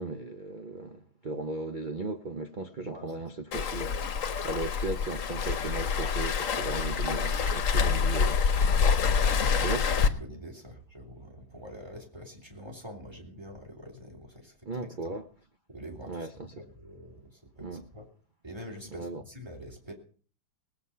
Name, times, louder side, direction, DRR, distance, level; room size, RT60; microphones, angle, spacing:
voice 1, 0.0-3.9 4.4-8.4 9.6-9.9 14.7-15.3 16.1-16.5 17.6-17.8 18.9-19.2, right 3 dB, 70° right, 0.4 m, -36 dB
voice 2, 2.9-3.2 7.2-7.6 10.0-15.1 15.7-16.3 16.6-18.0 18.4-19.9, equal, 15° right, 2.9 m, -46 dB
Waves surf, 3.5-10.1, left 6 dB, 50° left, 1.2 m, -26 dB
19.0 x 8.0 x 5.6 m
omnidirectional pair, 2.1 m